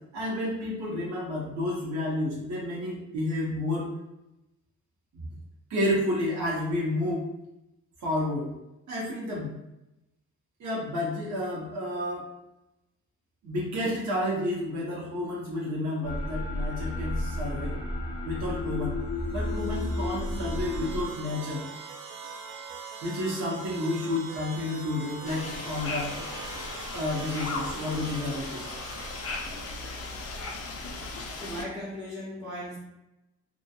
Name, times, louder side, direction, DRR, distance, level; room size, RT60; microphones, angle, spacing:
voice 1, 0.1-3.9 5.1-5.3 5.7-7.3 8.0-8.5 8.9-9.5 10.6-12.3 13.4-17.8 18.2-19.0 19.3-21.7 23.0-26.1 26.9-28.8, left 1 dB, 65° right, -5 dB, 0.8 m, -30 dB
sound 1, 16.0-21.1, left 1 dB, 20° left, 0.7 m, -32 dB
sound 2, 19.1-30.4, right 4 dB, 90° right, 0.5 m, -43 dB
sound 3, 25.2-31.6, left 3 dB, 50° left, 0.5 m, -37 dB
voice 2, 31.4-32.8, equal, 5° right, -11 dB, 0.9 m, -37 dB
2.7 x 2.2 x 2.2 m, 0.93 s
cardioid pair, 90°, 30 cm